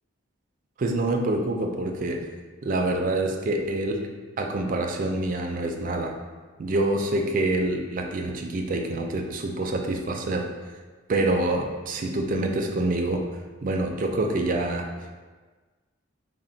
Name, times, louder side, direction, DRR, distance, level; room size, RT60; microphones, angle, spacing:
voice 1, 0.8-2.2 2.6-4.0 4.4-6.1 6.6-10.5 11.1-13.2 13.6-14.9, right 2 dB, 45° right, 3 dB, 0.4 m, -26 dB
4.1 x 2.2 x 3.8 m, 1.4 s
head